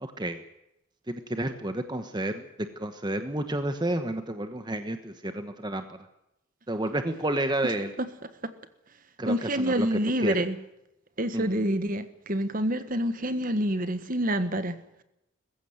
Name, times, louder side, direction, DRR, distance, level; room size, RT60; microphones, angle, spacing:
voice 1, 0.0-0.4 1.1-2.5 2.8-5.8 6.7-7.9 9.2-9.9 10.2-10.3 11.3-11.6, right 1 dB, 20° right, 1.2 m, -30 dB
voice 2, 9.2-10.6 11.2-14.8, right 1 dB, 40° right, 1.5 m, -27 dB
21.0 x 15.5 x 9.6 m
head